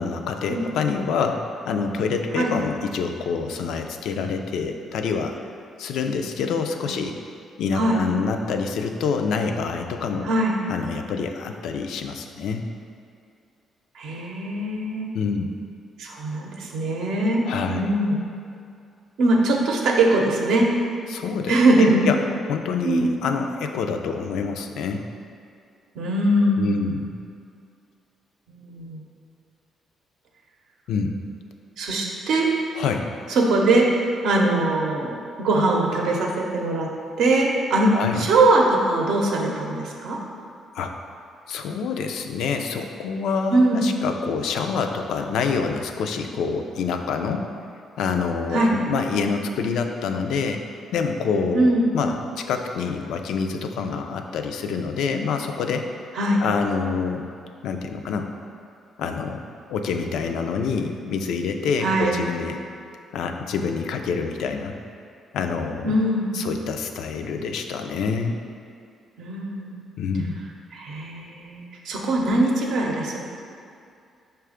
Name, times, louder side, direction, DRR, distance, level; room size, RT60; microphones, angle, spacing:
voice 1, 0.0-5.4 5.8-7.2 7.6-10.3 10.7-12.7 15.1-15.5 17.5-17.9 21.1-22.2 22.5-25.0 26.6-27.1 30.9-31.2 32.8-33.1 37.9-38.3 40.7-40.9 41.5-47.5 48.0-50.6 50.9-55.9 56.4-57.3 57.6-58.3 59.0-59.4 59.7-62.6 63.1-64.8 65.3-65.9 66.3-68.4 70.0-70.4, left 5 dB, 80° left, 5 dB, 0.3 m, -26 dB
voice 2, 10.2-10.6 14.0-15.1 16.0-18.2 19.2-20.7 21.5-22.1 22.8-23.2 25.9-26.9 28.5-29.1 31.8-32.5 33.3-33.9 34.2-36.9 37.2-40.2 43.5-43.9 48.5-48.7 51.5-51.9 56.1-56.4 61.8-62.2 65.8-66.4 69.2-69.8 70.7-73.2, right 2 dB, 80° right, -1 dB, 0.6 m, -21 dB
4.8 x 2.3 x 4.8 m, 2.4 s
cardioid pair, 90°, 0 cm